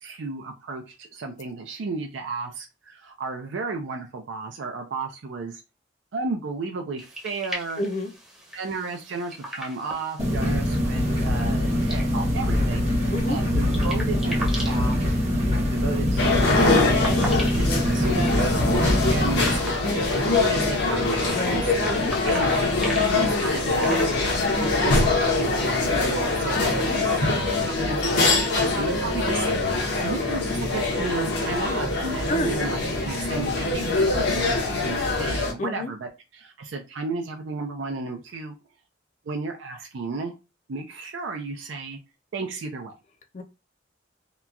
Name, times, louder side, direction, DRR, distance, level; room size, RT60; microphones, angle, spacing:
voice 1, 0.0-5.6 6.1-7.8 8.5-21.9 22.2-24.5 24.8-29.5 29.7-38.6 39.2-40.3 40.7-42.0 42.3-42.9, right 3 dB, 75° right, 0.4 m, -34 dB
sound 1, 7.0-24.9, equal, 5° right, 0.7 m, -40 dB
voice 2, 7.8-8.1 13.1-13.4 21.3-22.1 32.3-32.5 35.6-35.9 43.3-43.4, left 1 dB, 40° left, 0.5 m, -29 dB
sound 2, 10.2-19.6, left 1 dB, 35° right, 0.9 m, -23 dB
sound 3, 16.2-35.5, left 3 dB, 65° left, 0.8 m, -23 dB
2.9 x 2.2 x 2.3 m
head